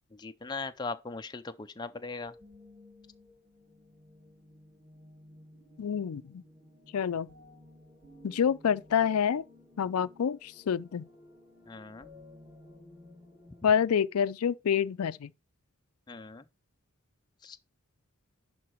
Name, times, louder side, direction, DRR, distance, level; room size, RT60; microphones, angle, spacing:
voice 1, 0.1-2.3 11.7-12.1 16.1-16.4 17.4-17.6, left 3 dB, 20° left, 0.4 m, -39 dB
sound 1, 2.2-13.8, left 1 dB, 5° right, 1.6 m, -55 dB
voice 2, 5.8-6.4 6.9-7.3 8.2-9.4 9.8-11.1 13.6-15.3, left 7 dB, 85° left, 0.4 m, -27 dB
11.0 x 3.8 x 4.5 m
head